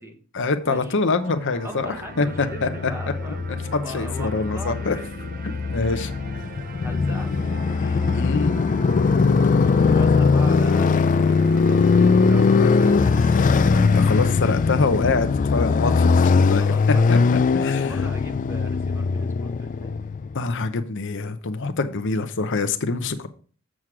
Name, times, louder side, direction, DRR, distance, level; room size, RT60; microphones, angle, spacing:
voice 1, 0.3-2.7 3.7-5.0 5.7-6.1 8.1-8.5 13.7-16.6 17.1-17.9 20.3-23.3, left 3 dB, 60° left, 9 dB, 0.7 m, -25 dB
sound 1, 0.6-14.3, right 4 dB, 45° right, 0.6 m, -41 dB
voice 2, 1.6-3.4 3.8-5.0 6.8-8.3 9.6-11.4 11.7-14.0 16.4-17.3 17.6-20.0, equal, 10° right, 4 dB, 1.2 m, -39 dB
Motorcycle, 2.2-20.4, left 4 dB, 35° left, 0.3 m, -20 dB
7.5 x 6.3 x 4.8 m, 0.40 s
head